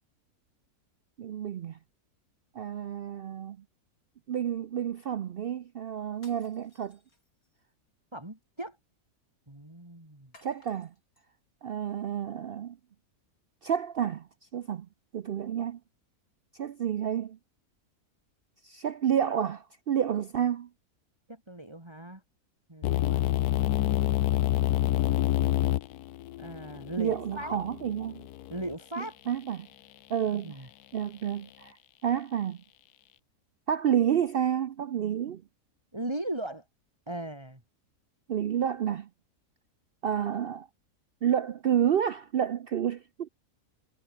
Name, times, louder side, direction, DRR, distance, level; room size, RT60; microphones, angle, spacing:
voice 1, 1.2-1.8 2.6-3.6 4.3-7.0 10.4-10.9 11.6-12.8 13.6-14.3 14.5-14.9 15.1-15.8 16.6-17.4 18.6-20.7 27.0-28.2 29.0-29.7 30.1-30.6 30.9-31.8 32.0-32.6 33.7-35.4 38.3-39.1 40.0-40.7 41.2-43.3, right 9 dB, 75° right, 0.5 m, -29 dB
sound 1, 6.1-7.6 10.3-11.3, left 2 dB, 65° left, 6.4 m, -60 dB
voice 2, 8.1-8.8 9.5-10.3 21.3-22.2 22.7-23.3 26.4-27.6 28.5-29.2 30.3-30.7 35.9-36.6 37.1-37.6, right 1 dB, 15° right, 3.7 m, -38 dB
sound 2, 22.8-28.7, left 14 dB, 85° left, 1.1 m, -28 dB
omnidirectional pair, 1.6 m